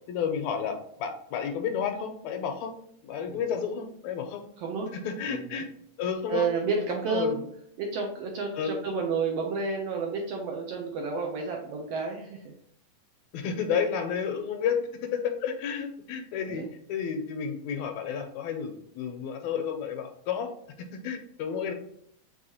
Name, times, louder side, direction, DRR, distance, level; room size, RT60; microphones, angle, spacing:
voice 1, 0.1-2.7 3.0-4.4 4.9-5.7 6.0-6.5 6.9-7.4 8.6-8.7 13.3-20.5 20.9-21.7, left 7 dB, 80° left, 6 dB, 1.8 m, -31 dB
voice 2, 4.6-4.9 5.3-5.6 6.3-7.4 7.8-12.5 16.5-16.7, right 4 dB, 75° right, 1 dB, 1.5 m, -31 dB
5.4 x 3.1 x 2.8 m, 0.69 s
omnidirectional pair, 3.3 m